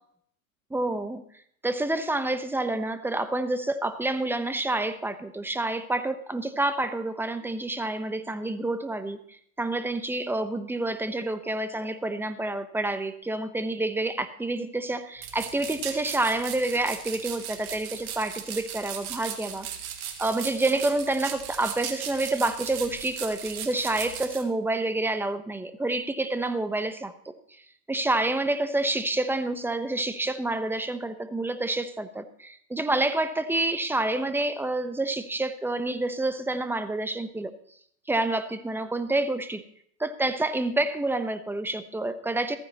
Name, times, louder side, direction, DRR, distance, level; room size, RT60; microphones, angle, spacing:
voice 1, 0.7-1.2 1.6-9.2 9.6-19.7 20.2-27.3 27.9-37.5 38.1-39.6 40.0-42.6, right 2 dB, 5° right, 10 dB, 0.9 m, -28 dB
sound 1, 15.2-24.4, right 9 dB, 75° right, 1.8 m, -37 dB
15.0 x 14.5 x 3.0 m, 0.66 s
hypercardioid pair, 95°, 43 cm